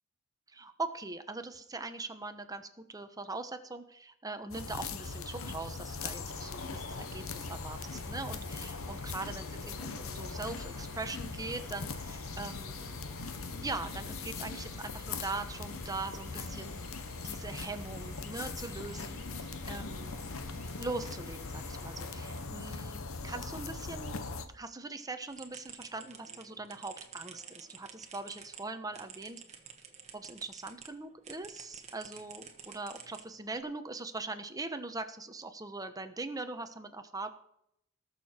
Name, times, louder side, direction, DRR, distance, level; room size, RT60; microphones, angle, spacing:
voice 1, 0.5-13.0 13.6-16.8 17.2-20.2 20.8-29.4 30.1-37.3, right 3 dB, 15° right, 8 dB, 1.0 m, -41 dB
sound 1, 4.5-24.5, left 4 dB, 75° left, 1.0 m, -40 dB
sound 2, 6.3-22.4, right 1 dB, 10° left, 3.7 m, -54 dB
sound 3, 25.3-30.9 31.2-33.6, right 7 dB, 30° right, 1.5 m, -50 dB
20.0 x 6.7 x 4.4 m, 0.74 s
head